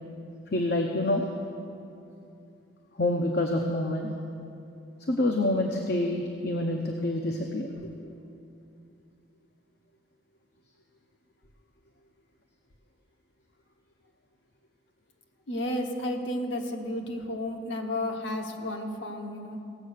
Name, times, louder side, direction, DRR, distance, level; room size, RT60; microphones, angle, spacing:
voice 1, 0.5-1.3 3.0-4.1 5.1-7.9, left 1 dB, 55° left, 2 dB, 0.8 m, -27 dB
voice 2, 15.5-19.6, left 1 dB, 70° left, 2 dB, 1.3 m, -32 dB
17.5 x 7.6 x 6.5 m, 2.7 s
head